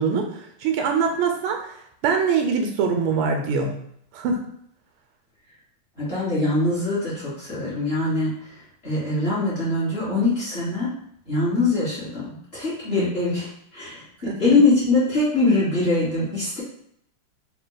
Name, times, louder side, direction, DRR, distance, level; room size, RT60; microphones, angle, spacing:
voice 1, 0.0-1.8 2.0-3.8 4.1-4.5 12.9-13.1 14.3-14.6, right 5 dB, 80° right, 3 dB, 1.4 m, -24 dB
voice 2, 6.0-8.3 8.8-10.9 11.3-13.5 13.7-14.0 14.4-16.6, left 2 dB, 30° left, -9 dB, 1.6 m, -22 dB
4.0 x 2.5 x 3.8 m, 0.72 s
omnidirectional pair, 2.4 m